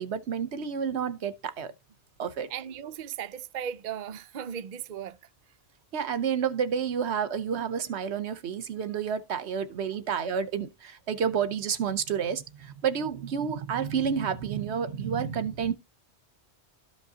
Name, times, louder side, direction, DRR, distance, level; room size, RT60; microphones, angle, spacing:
voice 1, 0.0-1.7 2.2-2.5 5.9-15.7, right 7 dB, 70° right, 1.1 m, -30 dB
voice 2, 2.5-5.2, right 8 dB, 55° right, 0.6 m, -37 dB
13.0 x 5.1 x 2.7 m
omnidirectional pair, 1.2 m